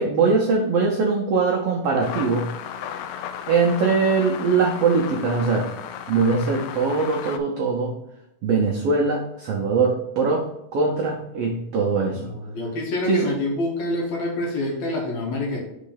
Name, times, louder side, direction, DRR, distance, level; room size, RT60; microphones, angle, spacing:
voice 1, 0.0-2.5 3.5-5.7 6.1-7.9 8.4-12.3 13.1-13.3, right 4 dB, 85° right, 0 dB, 1.3 m, -21 dB
sound 1, 2.0-7.4, left 9 dB, 85° left, 2.2 m, -35 dB
voice 2, 12.1-15.6, left 1 dB, 60° left, -1 dB, 2.4 m, -27 dB
5.7 x 4.1 x 5.5 m, 0.82 s
omnidirectional pair, 3.8 m